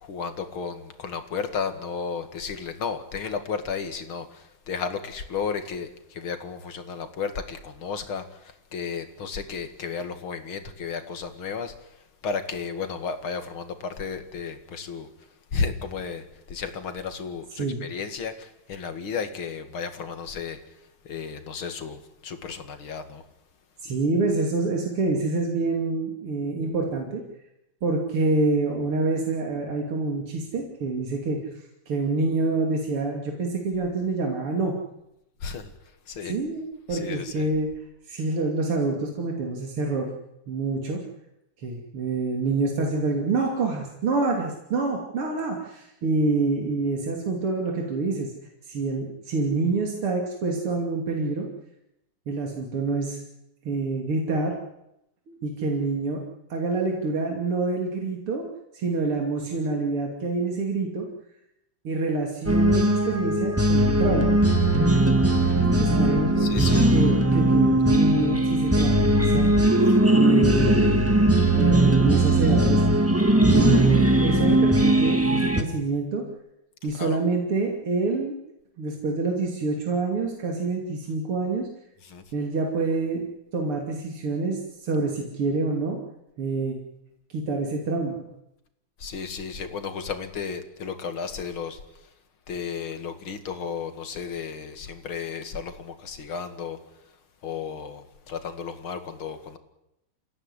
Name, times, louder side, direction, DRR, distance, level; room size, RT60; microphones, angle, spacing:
voice 1, 0.0-11.7 12.2-15.1 15.5-20.6 21.0-23.2 35.4-35.7 36.1-36.4 36.9-37.5 66.4-66.9 69.2-69.3 69.9-70.0 76.9-77.2 82.1-82.2 89.0-91.8 92.5-96.8 97.4-99.6, left 5 dB, 70° left, 8 dB, 2.8 m, -33 dB
voice 2, 23.8-27.2 27.8-31.4 31.9-34.8 36.2-37.7 38.1-40.1 40.5-41.0 41.6-48.3 48.7-51.5 52.3-53.2 53.7-54.6 55.3-56.2 56.5-58.5 58.7-61.1 61.8-64.3 65.8-66.5 66.9-69.5 70.1-72.8 73.4-76.2 76.8-78.3 78.8-81.7 82.3-83.3 83.5-86.0 86.4-86.8 87.3-88.3, right 3 dB, 90° right, 1 dB, 3.7 m, -26 dB
sound 1, 62.5-75.6, right 1 dB, 5° right, 1.5 m, -19 dB
28.0 x 16.5 x 9.9 m, 0.88 s
omnidirectional pair, 2.4 m